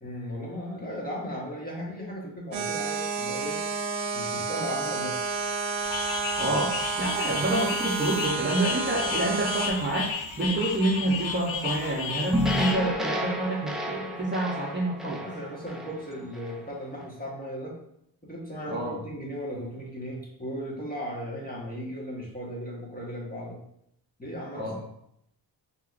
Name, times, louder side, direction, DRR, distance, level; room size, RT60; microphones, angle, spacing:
voice 1, 0.0-3.6 4.1-5.3 15.0-17.7 18.2-23.6 24.2-24.8, equal, 20° left, -4 dB, 1.4 m, -36 dB
sound 1, 2.5-9.7, right 5 dB, 80° right, 0.7 m, -31 dB
sound 2, 5.8-12.7, left 5 dB, 90° left, 0.7 m, -33 dB
voice 2, 6.4-15.2 18.7-18.9 24.5-24.8, right 2 dB, 25° right, -4 dB, 0.8 m, -28 dB
sound 3, 12.3-16.6, equal, ahead, 0.4 m, -31 dB
4.5 x 3.0 x 2.5 m, 0.75 s
cardioid pair, 85°, 45 cm